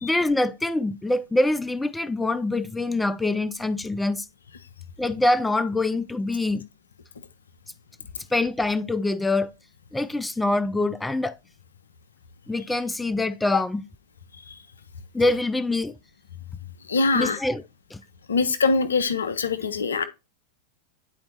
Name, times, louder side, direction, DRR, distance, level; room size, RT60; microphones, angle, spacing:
voice 1, 0.0-4.3 5.0-6.7 8.3-9.5 9.9-11.3 12.5-13.8 15.1-15.9 17.1-17.6 17.9-18.0, left 2 dB, 5° left, 0.4 m, -24 dB
voice 2, 16.9-17.4 18.3-20.0, left 4 dB, 70° left, 0.6 m, -23 dB
10.0 x 4.3 x 2.8 m
figure-of-eight pair, 90°, 0 cm